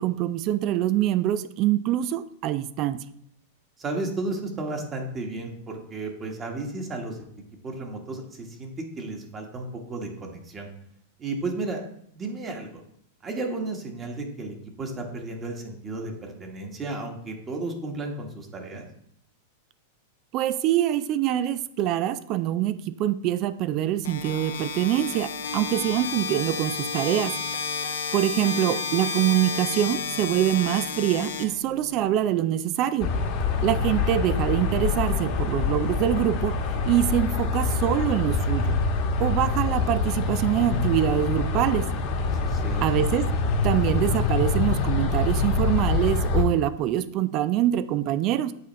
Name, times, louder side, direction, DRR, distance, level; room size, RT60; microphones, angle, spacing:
voice 1, 0.0-3.0 20.3-27.3 28.1-33.1 33.6-38.8 39.2-41.9 42.8-43.3 43.6-48.5, right 12 dB, 45° right, 14 dB, 0.4 m, -24 dB
voice 2, 3.8-7.3 7.6-10.7 11.2-11.8 12.1-12.8 13.2-18.8 42.3-42.9, right 2 dB, 25° right, 2 dB, 1.4 m, -33 dB
sound 1, 24.0-32.1, left 6 dB, 80° left, 0.8 m, -31 dB
sound 2, 33.0-46.4, left 4 dB, 50° left, 1.2 m, -25 dB
8.1 x 4.0 x 3.1 m, 0.68 s
hypercardioid pair, 110°, 0 cm